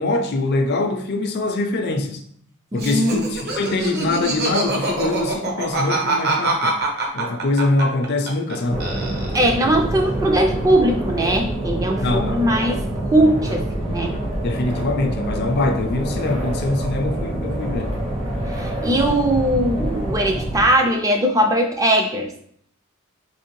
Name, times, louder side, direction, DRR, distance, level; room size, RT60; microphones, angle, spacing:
voice 1, 0.0-2.2 2.7-6.8 7.1-8.8 12.0-12.5 14.4-18.0, left 2 dB, 50° left, 0.4 m, -23 dB
voice 2, 2.7-3.2 9.3-12.8 13.1-14.1 18.5-22.3, right 1 dB, 15° right, 0.3 m, -20 dB
Laughter, 2.8-8.5 8.8-9.6, right 2 dB, 50° right, 0.7 m, -24 dB
sound 1, 8.7-20.7, right 1 dB, 75° right, 1.3 m, -26 dB
3.4 x 2.9 x 3.0 m
head